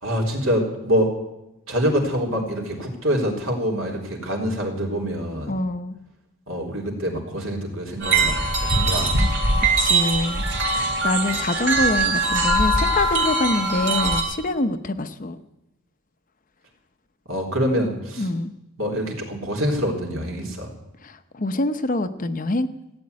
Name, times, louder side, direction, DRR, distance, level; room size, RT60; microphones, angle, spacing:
voice 1, 0.0-1.1 1.7-5.5 6.5-9.1 10.7-11.0 17.3-18.3 18.8-20.7, equal, 70° right, 0 dB, 3.7 m, -25 dB
voice 2, 5.5-6.0 9.8-10.5 10.7-15.4 18.2-18.5 21.0-22.7, left 2 dB, 40° left, 9 dB, 0.8 m, -25 dB
sound 1, 8.0-14.2, right 2 dB, 55° right, 3.2 m, -21 dB
16.0 x 8.8 x 9.6 m, 0.92 s
head